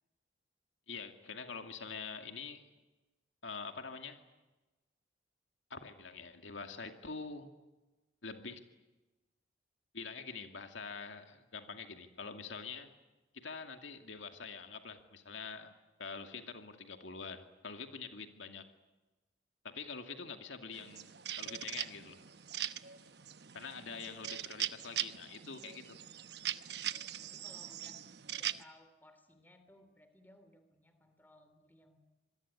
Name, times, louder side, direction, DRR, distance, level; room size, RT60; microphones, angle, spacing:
voice 1, 0.9-2.7 3.4-4.2 5.7-7.5 8.2-8.6 9.9-12.9 13.3-18.6 19.6-22.2 23.5-26.0, left 5 dB, 85° left, 6 dB, 2.4 m, -45 dB
sound 1, 20.7-28.6, right 11 dB, 60° right, 1.0 m, -41 dB
voice 2, 27.0-28.0 28.3-32.0, left 1 dB, 10° left, 9 dB, 3.0 m, -62 dB
26.0 x 21.5 x 9.8 m, 1.1 s
head